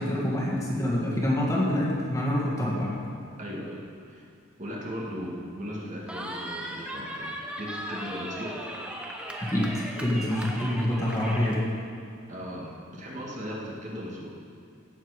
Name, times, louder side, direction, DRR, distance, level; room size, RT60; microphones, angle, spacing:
voice 1, 0.0-3.0 9.4-9.7 10.0-11.6, left 1 dB, 15° left, -4 dB, 1.8 m, -26 dB
voice 2, 3.4-4.3 4.6-8.6 12.3-14.3, equal, 35° right, -4 dB, 1.7 m, -37 dB
Cheering, 6.1-11.6, equal, 5° right, 0.9 m, -37 dB
17.0 x 7.2 x 4.8 m, 2.4 s
head